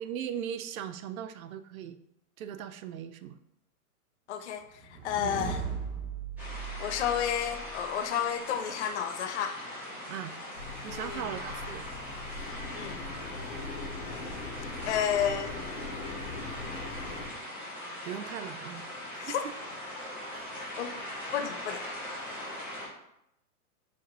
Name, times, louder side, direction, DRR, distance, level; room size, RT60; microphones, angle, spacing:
voice 1, 0.0-2.0 2.4-3.4 5.2-5.4 10.1-10.4 10.8-11.9 18.0-18.8 19.1-19.4 20.3-20.5, right 9 dB, 65° right, 10 dB, 0.5 m, -38 dB
voice 2, 4.3-4.7 5.0-5.6 6.8-9.6 10.9-11.2 12.7-13.0 14.9-15.5 19.2-19.3 20.8-20.9 21.3-21.9, left 9 dB, 50° left, 8 dB, 0.5 m, -31 dB
sound 1, 4.8-8.0, right 5 dB, 25° right, 1.3 m, -38 dB
sound 2, 6.4-22.9, left 1 dB, 5° right, 0.9 m, -41 dB
sound 3, 10.5-17.3, left 3 dB, 75° left, 1.1 m, -41 dB
5.1 x 2.5 x 2.8 m, 0.80 s
hypercardioid pair, 135°, 45 cm